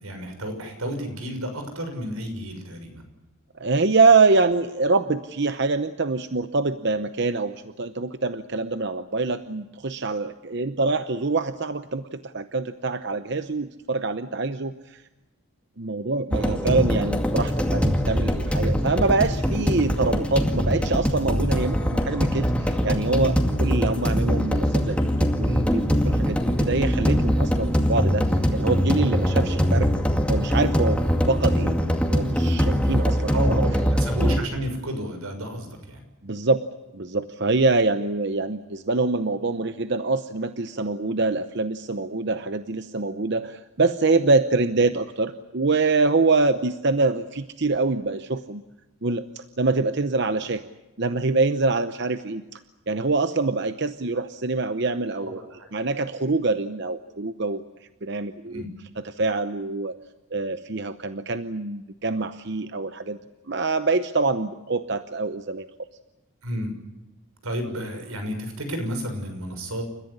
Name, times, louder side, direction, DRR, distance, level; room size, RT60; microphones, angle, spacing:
voice 1, 0.0-3.0 33.3-36.0 55.2-55.3 55.6-55.7 58.5-58.7 66.4-66.7 67.4-69.8, equal, 90° right, 6 dB, 6.4 m, -31 dB
voice 2, 3.6-15.0 15.8-29.9 30.3-31.0 31.3-31.8 32.1-33.3 36.2-36.6 36.9-48.6 49.0-50.6 51.0-52.6 52.9-55.4 55.7-57.6 58.0-58.6 59.0-60.0 60.3-63.2 63.5-65.7, right 3 dB, 50° right, 10 dB, 0.8 m, -25 dB
sound 1, 16.3-34.4, equal, 5° left, 2.1 m, -22 dB
29.5 x 15.0 x 9.9 m, 1.1 s
head